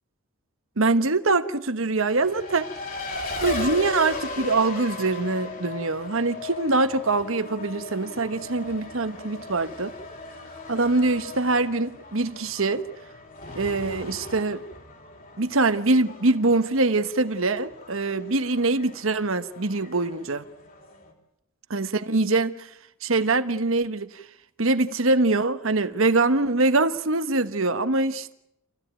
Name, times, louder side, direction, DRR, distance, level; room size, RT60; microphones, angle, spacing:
voice 1, 0.8-2.7 3.4-9.9 10.7-12.8 13.5-14.6 15.4-20.4 21.7-22.7 23.0-24.2 24.6-28.3, right 3 dB, 65° right, 1.3 m, -23 dB
Race car auto racing, 2.0-21.1, left 3 dB, 40° left, 4.5 m, -38 dB
27.0 x 16.5 x 9.0 m
head